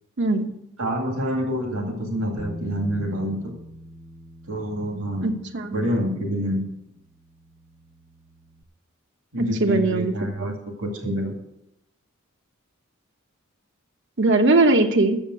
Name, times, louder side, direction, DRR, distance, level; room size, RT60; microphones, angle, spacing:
voice 1, 0.8-3.5 4.5-5.4 5.7-6.7 9.3-11.3, equal, 80° right, 1 dB, 2.3 m, -27 dB
Bass guitar, 2.4-8.6, equal, 10° right, 0.8 m, -44 dB
voice 2, 5.2-5.7 9.4-10.5 14.2-15.2, right 2 dB, 60° right, 6 dB, 1.0 m, -20 dB
8.7 x 7.2 x 7.8 m, 0.83 s
head